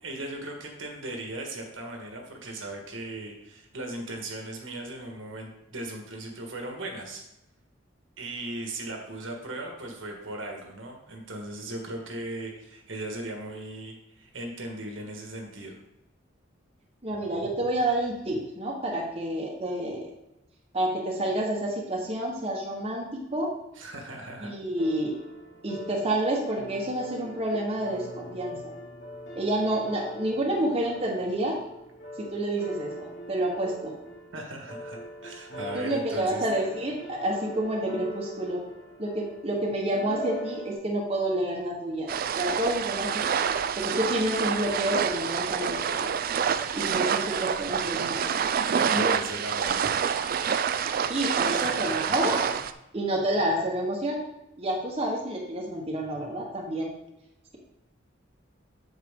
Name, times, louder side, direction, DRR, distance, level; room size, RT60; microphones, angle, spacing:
voice 1, 0.0-7.2 8.2-15.7 23.7-24.5 34.3-36.4 48.7-49.9 51.5-52.5, right 1 dB, 80° right, 1 dB, 1.7 m, -38 dB
voice 2, 17.0-20.1 20.7-23.5 24.4-25.1 25.6-28.6 29.3-31.6 32.2-33.9 35.7-38.6 39.0-43.3 43.7-46.2 46.7-48.5 48.9-49.1 51.1-52.4 52.9-54.2 54.6-56.9, right 1 dB, 30° right, -2 dB, 1.2 m, -29 dB
sound 1, 24.8-40.7, equal, 70° left, 1.8 m, -41 dB
sound 2, 42.1-52.7, right 7 dB, 45° right, 0.3 m, -27 dB
7.8 x 6.5 x 3.7 m, 0.88 s
head